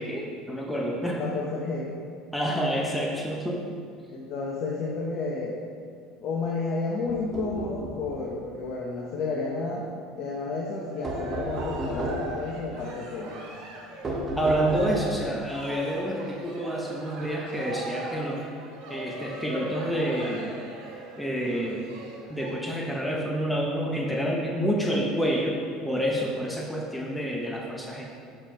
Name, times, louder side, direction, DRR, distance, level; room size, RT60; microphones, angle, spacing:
voice 1, 0.0-1.2 2.3-3.6 14.4-18.5 18.9-20.5 21.2-21.9 22.3-28.1, equal, 5° left, -1 dB, 0.8 m, -28 dB
voice 2, 1.2-1.9 4.1-5.6 6.2-9.9 10.1-13.4, left 3 dB, 55° left, -2 dB, 0.9 m, -31 dB
sound 1, 7.1-8.1 11.0-12.4 14.0-15.2, right 1 dB, 25° right, 1.1 m, -33 dB
Cheering, 10.8-22.5, right 2 dB, 65° right, 1.5 m, -40 dB
7.3 x 4.5 x 4.5 m, 2.2 s
supercardioid pair, 105°, 0 cm